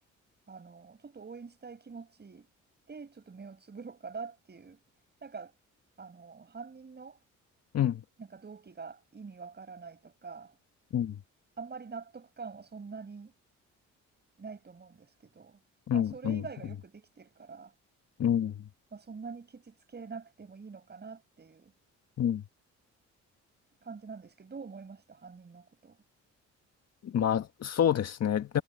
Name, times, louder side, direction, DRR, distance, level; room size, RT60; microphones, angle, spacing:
voice 1, 0.5-2.5 2.9-4.8 5.2-5.5 6.0-7.2 8.2-10.6 11.6-13.3 14.4-15.6 15.9-17.7 18.9-21.7 23.8-26.0, right 5 dB, 35° right, 6.5 m, -45 dB
voice 2, 15.9-16.4 18.2-18.7 22.2-22.4 27.0-28.6, left 9 dB, 55° left, 1.7 m, -28 dB
cardioid pair, 90°, 30 cm